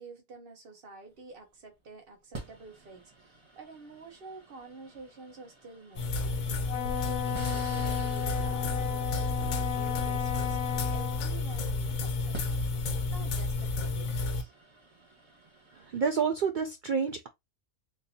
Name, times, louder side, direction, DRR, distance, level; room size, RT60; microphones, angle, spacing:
voice 1, 0.0-6.3 6.8-14.5, right 3 dB, 45° right, 1.2 m, -49 dB
sound 1, 1.1-1.4 2.3-11.3 12.1-16.3, right 3 dB, 25° right, 0.9 m, -50 dB
sound 2, 6.0-14.4, left 3 dB, 85° left, 1.2 m, -31 dB
Wind instrument woodwind instrument, 6.7-11.2, left 11 dB, 65° left, 0.9 m, -35 dB
voice 2, 15.8-17.3, right 6 dB, 90° right, 0.4 m, -29 dB
3.8 x 2.6 x 2.8 m
omnidirectional pair, 1.4 m